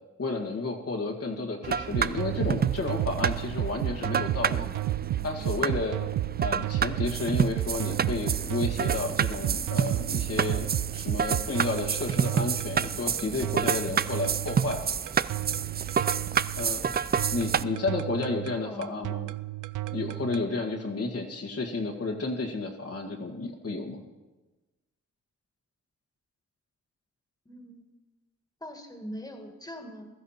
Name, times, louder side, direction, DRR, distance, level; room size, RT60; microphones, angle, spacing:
voice 1, 0.2-4.7 5.2-6.0 6.4-10.7 10.9-14.8 16.6-16.9 17.3-19.3 19.9-24.1, left 3 dB, 50° left, 1 dB, 1.9 m, -31 dB
sound 1, 1.6-17.6, right 7 dB, 30° right, 0.4 m, -30 dB
sound 2, 1.9-20.5, right 14 dB, 85° right, 0.5 m, -32 dB
voice 2, 18.6-19.1 27.5-27.9 28.6-30.1, left 1 dB, 10° left, 4 dB, 2.2 m, -42 dB
16.0 x 12.5 x 4.4 m, 1.2 s
cardioid pair, 55°, 30 cm